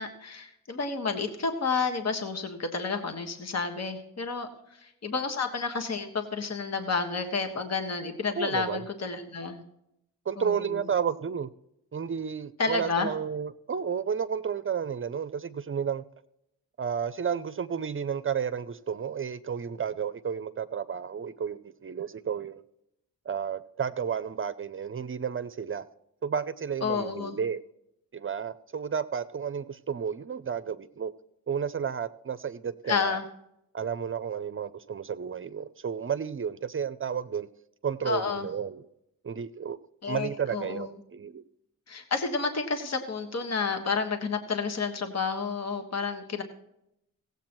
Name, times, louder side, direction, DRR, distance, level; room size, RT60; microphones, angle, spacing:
voice 1, 0.0-4.5 4.8-9.6 10.4-10.7 12.6-13.1 26.8-27.4 32.9-33.2 38.0-38.5 40.0-40.9 41.9-46.4, left 4 dB, 50° left, 1.5 m, -30 dB
voice 2, 8.4-8.8 10.3-11.5 11.9-16.0 16.8-22.6 23.2-25.8 26.2-27.6 28.1-31.1 31.5-33.2 33.7-37.5 37.8-38.8 39.2-39.8 40.1-41.4, right 7 dB, 35° right, 0.6 m, -32 dB
16.0 x 8.1 x 4.5 m
supercardioid pair, 55°, 34 cm